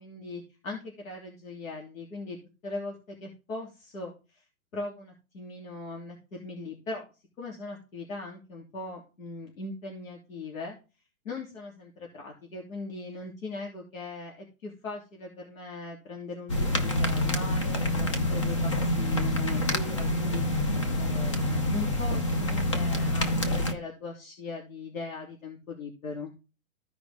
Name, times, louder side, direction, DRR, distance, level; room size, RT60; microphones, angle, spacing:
voice 1, 0.0-2.4 2.6-4.4 4.7-7.1 7.4-10.8 11.2-26.3, left 3 dB, 70° left, 0 dB, 3.1 m, -40 dB
sound 1, 16.5-23.7, left 1 dB, 20° left, 0.6 m, -27 dB
15.0 x 5.1 x 3.6 m, 0.31 s
hypercardioid pair, 170°, 42 cm